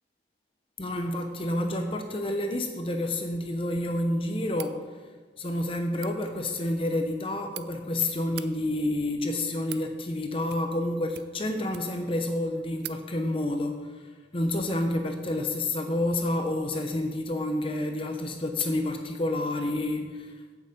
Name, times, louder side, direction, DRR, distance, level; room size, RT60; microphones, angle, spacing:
voice 1, 0.8-4.8 5.4-20.5, left 1 dB, 30° left, 5 dB, 0.7 m, -29 dB
sound 1, 4.5-4.8 5.8-6.1 7.1-7.6 8.2-8.5 9.3-9.9 10.4-10.8 11.1-12.1 12.4-12.5 12.8-13.0, right 14 dB, 60° right, 0.4 m, -42 dB
8.7 x 6.8 x 8.1 m, 1.5 s
head